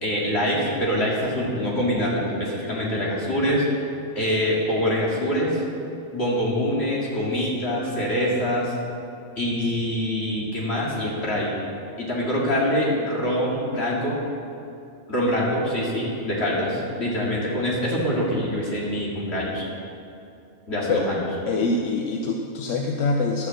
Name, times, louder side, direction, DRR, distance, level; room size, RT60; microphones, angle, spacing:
voice 1, 0.0-3.6 4.2-5.6 6.1-8.7 9.4-11.5 12.0-14.2 15.1-19.7 20.7-21.3, equal, 55° left, -5 dB, 2.5 m, -24 dB
voice 2, 21.5-23.5, left 3 dB, 75° left, 1 dB, 1.1 m, -25 dB
11.5 x 6.4 x 7.5 m, 2.6 s
omnidirectional pair, 1.3 m